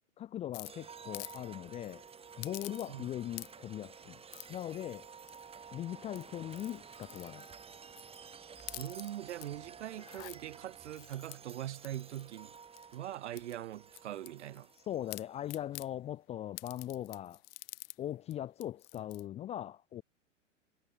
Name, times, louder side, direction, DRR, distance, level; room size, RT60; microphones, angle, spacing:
voice 1, 0.2-2.0 2.4-4.2 4.5-5.1 5.7-7.5 14.9-17.4 18.0-20.0, left 12 dB, 20° left, 0.5 m, -40 dB
sound 1, 0.5-1.4 1.7-1.9 2.4-3.1 3.3-3.8 4.3-4.6 5.3-5.7 6.1-8.2 8.6-9.5 9.9-10.4 11.0-13.0 13.4-14.8 15.1-15.9 16.6-18.0 18.3-18.4 18.6-19.2, left 22 dB, 50° left, 1.6 m, -48 dB
sound 2, 0.6-15.8, right 6 dB, 15° right, 2.3 m, -52 dB
voice 2, 8.8-12.5 12.9-14.7, right 12 dB, 65° right, 1.2 m, -42 dB
figure-of-eight pair, 100°, 37 cm